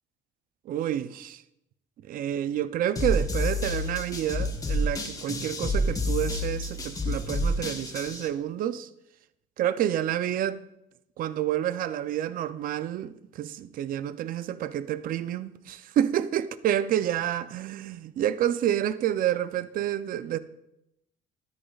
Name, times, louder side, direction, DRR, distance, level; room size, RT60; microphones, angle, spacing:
voice 1, 0.7-1.4 2.1-8.9 9.6-10.6 11.2-20.4, right 11 dB, 55° right, 0.5 m, -29 dB
sound 1, 3.0-8.3, left 1 dB, 20° left, 1.2 m, -29 dB
12.5 x 10.0 x 2.4 m
cardioid pair, 110°, 17 cm